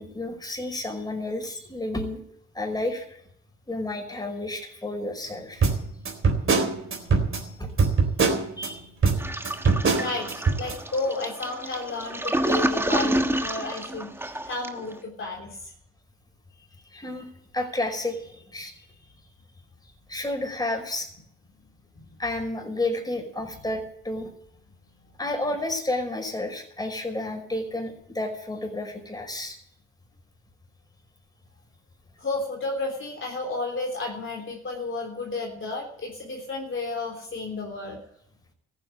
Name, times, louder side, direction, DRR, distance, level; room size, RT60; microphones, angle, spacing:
voice 1, 0.0-2.2 2.5-3.2 3.7-5.7 7.6-7.7 8.6-8.9 16.9-18.9 20.1-21.1 22.2-24.3 25.2-29.6, left 2 dB, 15° left, 2 dB, 5.4 m, -31 dB
sound 1, 5.6-8.7 9.0-10.7, right 4 dB, 45° right, 4.0 m, -22 dB
Toilet flush, 9.2-14.9, right 1 dB, 10° right, 1.3 m, -28 dB
voice 2, 9.9-15.7 22.0-22.1 32.2-38.0, left 3 dB, 40° left, -1 dB, 3.5 m, -32 dB
14.5 x 9.3 x 9.2 m, 0.70 s
cardioid pair, 90°, 30 cm